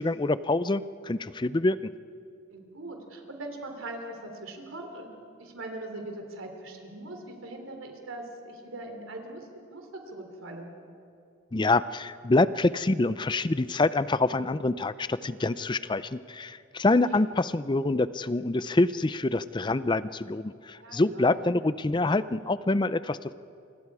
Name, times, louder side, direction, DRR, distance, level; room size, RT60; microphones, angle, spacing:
voice 1, 0.0-1.9 11.5-23.3, left 2 dB, 20° left, 15 dB, 0.5 m, -26 dB
voice 2, 2.5-5.1 5.4-10.7 16.9-17.2 20.8-21.4, right 2 dB, 85° right, 3 dB, 3.5 m, -41 dB
28.5 x 25.0 x 4.9 m, 2.6 s
head